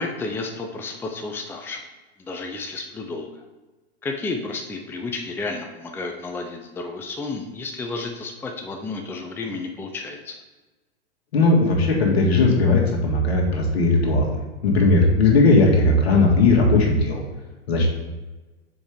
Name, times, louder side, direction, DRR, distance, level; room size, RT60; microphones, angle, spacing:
voice 1, 0.0-1.8 2.2-3.4 4.0-10.4, left 3 dB, 5° left, 3 dB, 0.5 m, -31 dB
voice 2, 11.3-14.3 14.6-17.2 17.7-17.9, left 2 dB, 75° left, 0 dB, 1.7 m, -17 dB
7.0 x 4.9 x 3.4 m, 1.2 s
hypercardioid pair, 105°, 32 cm